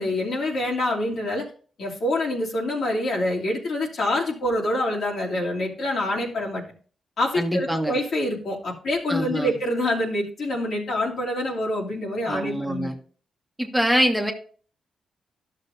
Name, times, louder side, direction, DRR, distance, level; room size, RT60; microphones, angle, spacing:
voice 1, 0.0-1.5 1.8-6.6 7.2-12.9, left 1 dB, 70° left, -3 dB, 2.8 m, -26 dB
voice 2, 7.3-7.9 9.1-9.6 12.3-12.9 13.6-14.3, equal, ahead, 2 dB, 1.3 m, -24 dB
12.5 x 6.6 x 2.6 m, 0.41 s
cardioid pair, 85°, 0 cm